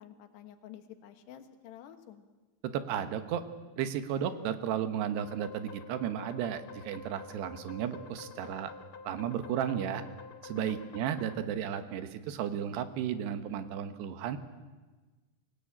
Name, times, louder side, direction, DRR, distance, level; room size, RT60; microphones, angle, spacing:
voice 1, 0.0-2.3 10.6-10.8, left 11 dB, 85° left, 8 dB, 3.6 m, -49 dB
voice 2, 2.6-3.4 3.8-8.7 9.1-10.0 10.4-14.4, right 9 dB, 85° right, 10 dB, 3.3 m, -34 dB
sound 1, 5.2-11.4, left 6 dB, 60° left, 2.0 m, -49 dB
24.0 x 17.5 x 8.8 m, 1.3 s
omnidirectional pair, 4.7 m